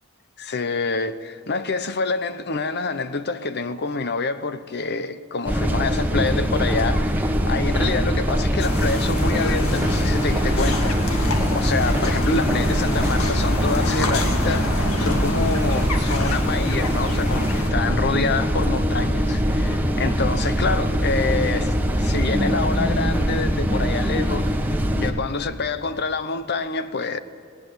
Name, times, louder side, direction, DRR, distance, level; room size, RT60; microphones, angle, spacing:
voice 1, 0.4-11.2 11.5-24.5 25.0-27.2, left 4 dB, 50° left, 0.8 m, -27 dB
sound 1, 5.5-25.1, equal, 10° right, 1.4 m, -22 dB
sound 2, 8.6-17.7, left 2 dB, 85° left, 2.0 m, -29 dB
19.0 x 18.5 x 8.5 m
head